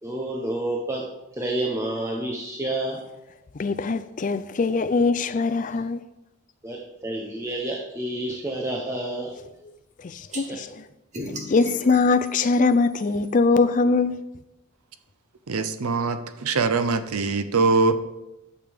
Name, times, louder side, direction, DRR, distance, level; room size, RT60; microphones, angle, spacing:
voice 1, 0.0-3.0 6.6-9.3 10.3-10.6, right 1 dB, 15° right, 0.8 m, -29 dB
voice 2, 3.6-6.0 10.0-10.7 11.5-14.2, left 4 dB, 35° left, 0.4 m, -22 dB
sound 1, 10.3-10.4 11.1-13.3, equal, 30° right, 1.3 m, -37 dB
voice 3, 15.5-17.9, right 4 dB, 85° right, 0.7 m, -22 dB
12.0 x 6.6 x 3.5 m
head